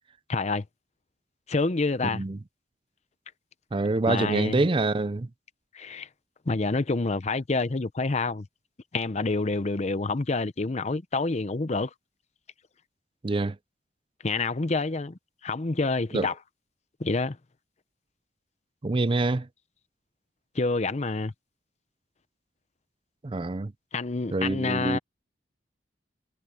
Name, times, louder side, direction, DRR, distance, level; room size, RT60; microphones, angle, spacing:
voice 1, 0.3-0.6 1.5-2.2 4.1-4.6 5.7-6.1 6.5-8.5 8.9-11.9 14.2-16.3 17.0-17.4 20.5-21.3 23.9-25.0, left 3 dB, 40° left, 0.7 m, -27 dB
voice 2, 3.7-5.3 13.2-13.6 16.1-16.3 18.8-19.5 23.2-23.7 24.3-25.0, right 2 dB, 30° right, 0.5 m, -26 dB
head